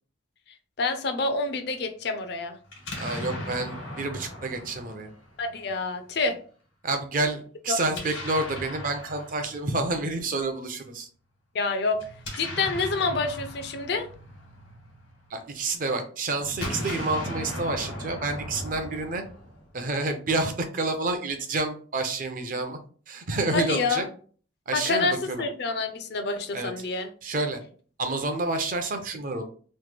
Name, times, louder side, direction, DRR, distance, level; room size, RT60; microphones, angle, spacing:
voice 1, 0.8-2.6 5.4-6.4 7.7-8.0 11.5-12.0 12.4-14.1 23.5-24.1 24.7-27.1, left 3 dB, 60° left, 7 dB, 0.5 m, -27 dB
Explosion, 2.7-5.7 7.8-10.0 11.9-15.4 16.4-19.8, left 1 dB, 85° left, 1.3 m, -38 dB
voice 2, 3.0-5.1 6.8-11.1 15.3-19.2 19.7-22.8 23.1-24.0 24.7-25.2 26.5-26.7 27.2-27.6 28.0-29.4, right 2 dB, 45° right, 6 dB, 0.5 m, -29 dB
3.0 x 2.1 x 3.3 m, 0.42 s
head